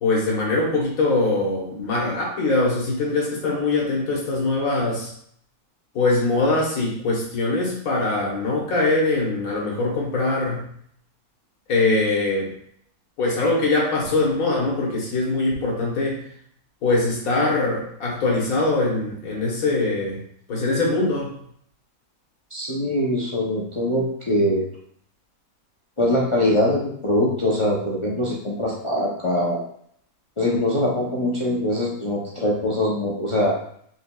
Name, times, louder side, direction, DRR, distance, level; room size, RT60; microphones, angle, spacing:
voice 1, 0.0-5.1 5.9-10.6 11.7-12.5 13.2-16.2 16.8-20.2 20.5-21.3, left 2 dB, 80° left, -3 dB, 1.5 m, -22 dB
voice 2, 22.5-24.7 26.0-29.6 30.4-33.6, left 1 dB, 40° left, -5 dB, 0.4 m, -22 dB
4.5 x 3.8 x 2.2 m, 0.65 s
omnidirectional pair, 1.5 m